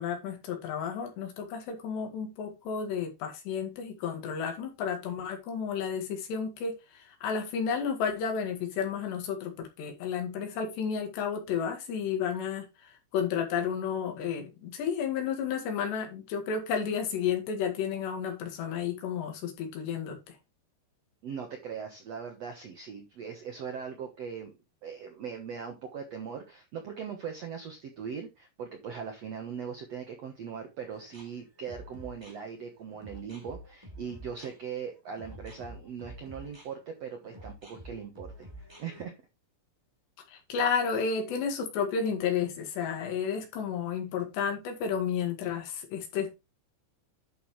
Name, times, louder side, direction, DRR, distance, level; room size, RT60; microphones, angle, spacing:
voice 1, 0.0-20.4 40.3-46.3, left 7 dB, 75° left, 4.1 m, -32 dB
voice 2, 21.2-24.6 24.8-39.1, right 7 dB, 75° right, 1.5 m, -40 dB
sound 1, 30.9-39.0, right 1 dB, 5° right, 2.4 m, -48 dB
11.0 x 6.2 x 3.2 m
omnidirectional pair, 5.0 m